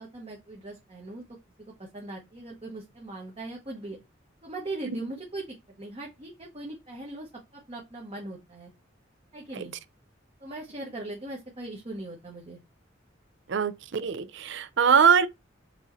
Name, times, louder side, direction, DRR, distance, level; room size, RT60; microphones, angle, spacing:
voice 1, 0.0-1.4 1.8-4.0 4.4-8.7 9.3-9.7 10.4-12.6, right 2 dB, 30° right, 1.0 m, -40 dB
voice 2, 13.5-15.3, right 7 dB, 65° right, 0.5 m, -22 dB
6.0 x 2.8 x 3.0 m
head